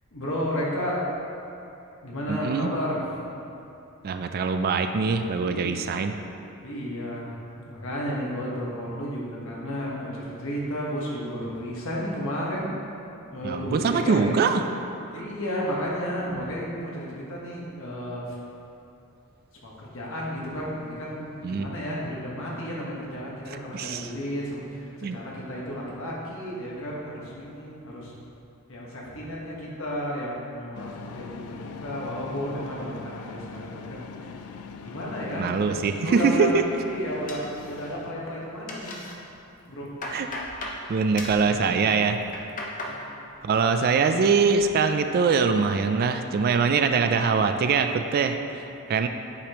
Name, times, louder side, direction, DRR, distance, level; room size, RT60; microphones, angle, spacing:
voice 1, 0.1-1.1 2.0-3.0 5.4-5.7 6.6-7.3 7.6-12.7 13.2-14.3 15.1-18.4 19.6-28.1 28.7-34.5 34.8-36.5 36.8-39.0 39.7-39.9 41.3-41.8 42.8-43.0, equal, 65° left, -5 dB, 1.3 m, -33 dB
voice 2, 2.3-2.7 4.0-6.1 13.4-14.7 21.4-21.7 23.7-24.1 25.0-25.2 35.4-36.5 40.1-40.3 40.9-42.2 43.4-49.1, right 5 dB, 45° right, 7 dB, 0.3 m, -23 dB
sound 1, 30.7-38.1, left 5 dB, 80° left, 0.4 m, -41 dB
sound 2, 37.3-38.1 38.4-39.2 39.6-40.8 41.2-41.5 42.1-43.0 43.3-43.9 44.2-44.7, left 2 dB, 40° left, 0.8 m, -37 dB
8.5 x 5.0 x 3.0 m, 2.8 s
head